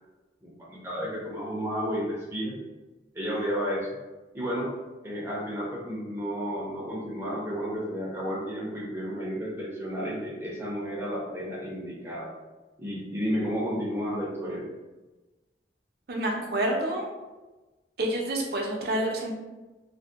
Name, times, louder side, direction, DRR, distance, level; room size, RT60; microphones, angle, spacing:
voice 1, 0.4-2.5 3.1-3.9 4.3-4.7 5.0-12.3 12.8-14.7, equal, 15° right, -5 dB, 0.6 m, -32 dB
voice 2, 16.1-17.1 18.0-19.4, right 1 dB, 55° right, -1 dB, 0.6 m, -28 dB
2.6 x 2.2 x 3.5 m, 1.1 s
head